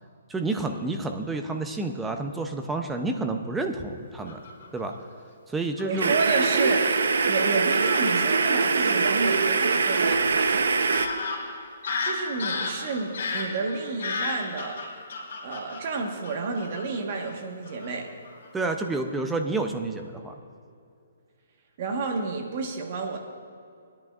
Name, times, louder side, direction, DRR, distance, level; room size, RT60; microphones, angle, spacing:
voice 1, 0.3-4.4 4.7-4.9 5.5-6.2 18.5-20.3, right 3 dB, 5° right, 5 dB, 0.5 m, -29 dB
Fowl / Bird vocalization bird call bird song, 4.3-5.0 5.8-6.4 7.2-7.3 7.7-8.1 9.7-9.8 10.4-10.5 10.9-16.8 17.1-17.3 17.7-17.9 18.2-18.5, left 4 dB, 65° left, 2.7 m, -33 dB
voice 2, 5.8-10.3 12.0-15.0 15.4-18.1 21.8-23.2, right 4 dB, 40° right, 2 dB, 1.3 m, -30 dB
sound 1, 6.0-11.1, right 4 dB, 85° right, 0.7 m, -23 dB
19.5 x 10.5 x 2.4 m, 2.5 s
hypercardioid pair, 165°, 0 cm